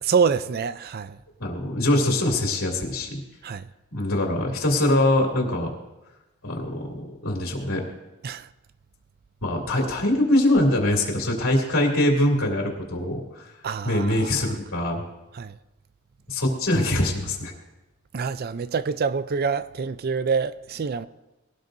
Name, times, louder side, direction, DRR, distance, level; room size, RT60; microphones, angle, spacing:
voice 1, 0.0-1.2 3.4-3.7 8.2-8.5 13.6-14.5 15.3-15.5 18.1-21.1, right 5 dB, 50° right, 0.4 m, -26 dB
voice 2, 1.4-3.2 3.9-5.7 6.4-7.8 9.4-13.5 13.8-15.0 16.3-17.5, left 1 dB, 80° left, 2.8 m, -23 dB
21.5 x 17.5 x 2.6 m
head